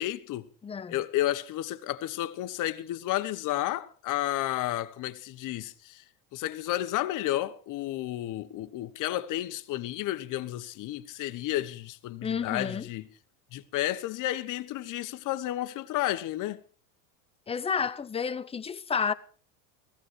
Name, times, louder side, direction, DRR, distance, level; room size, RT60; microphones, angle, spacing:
voice 1, 0.0-0.5 0.9-6.0 6.3-13.1 13.5-16.6, left 14 dB, 45° left, 1.3 m, -32 dB
voice 2, 0.6-1.0 12.2-12.9 17.5-19.1, left 6 dB, 15° left, 0.7 m, -30 dB
16.0 x 15.5 x 4.7 m
supercardioid pair, 120°, 42 cm